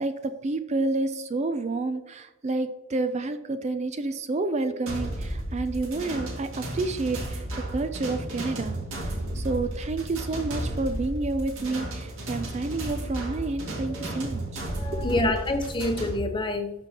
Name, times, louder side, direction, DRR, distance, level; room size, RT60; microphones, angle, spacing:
voice 1, 0.0-14.6 15.0-15.1, right 3 dB, 30° right, 0.4 m, -29 dB
sound 1, 4.9-16.2, right 1 dB, 75° right, 2.2 m, -33 dB
voice 2, 14.7-16.7, left 2 dB, 20° left, 0.8 m, -27 dB
12.5 x 5.3 x 2.9 m
head